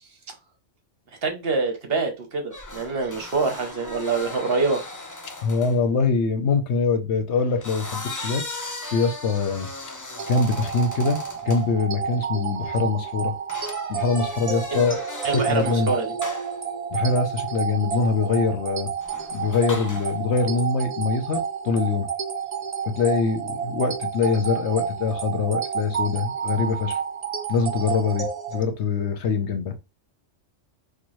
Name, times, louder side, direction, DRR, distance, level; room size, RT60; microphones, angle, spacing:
voice 1, 1.2-4.8 14.7-14.8 15.2-16.1, right 4 dB, 55° right, 1.0 m, -25 dB
sound 1, 2.5-5.8 7.3-11.7 13.5-15.9 16.2-16.6 19.0-20.2, left 2 dB, 25° left, 0.4 m, -37 dB
voice 2, 5.4-8.4 8.9-9.7 10.3-13.3 13.9-15.9 16.9-18.9 19.3-22.1 22.9-27.0 27.5-29.7, left 4 dB, 65° left, 0.9 m, -24 dB
sound 2, 10.2-28.6, right 7 dB, 70° right, 0.3 m, -30 dB
4.4 x 2.4 x 3.0 m
omnidirectional pair, 1.3 m